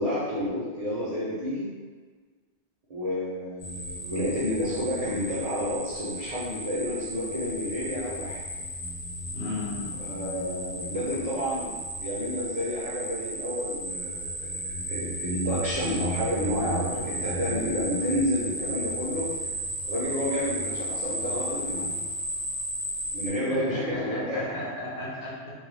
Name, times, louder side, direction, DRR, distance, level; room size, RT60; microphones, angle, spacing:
voice 1, 0.0-1.7 2.9-8.4 10.0-19.3 19.8-22.0 23.1-24.5, equal, 45° right, -9 dB, 0.5 m, -30 dB
sound 1, 3.6-23.3, right 1 dB, 40° left, 0.4 m, -34 dB
voice 2, 9.3-9.9 23.5-25.5, left 1 dB, 65° left, -6 dB, 0.9 m, -34 dB
2.3 x 2.2 x 3.2 m, 1.4 s
omnidirectional pair, 1.1 m